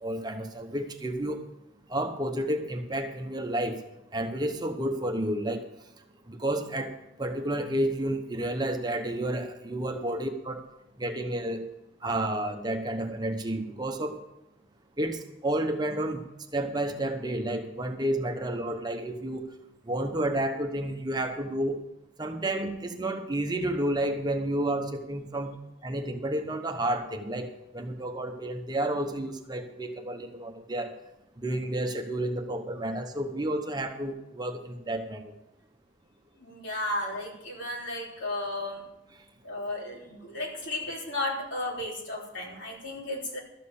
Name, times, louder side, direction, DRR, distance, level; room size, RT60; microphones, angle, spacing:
voice 1, 0.0-1.4 1.9-3.8 4.1-5.6 6.3-6.9 7.2-10.6 11.0-11.6 12.0-14.2 15.0-16.2 16.5-19.5 19.9-21.8 22.2-25.5 25.8-30.9 31.4-35.3, right 1 dB, 20° right, 5 dB, 0.9 m, -31 dB
voice 2, 36.4-38.8 39.4-43.4, left 1 dB, 70° left, -2 dB, 3.4 m, -34 dB
13.0 x 7.5 x 6.9 m, 0.89 s
head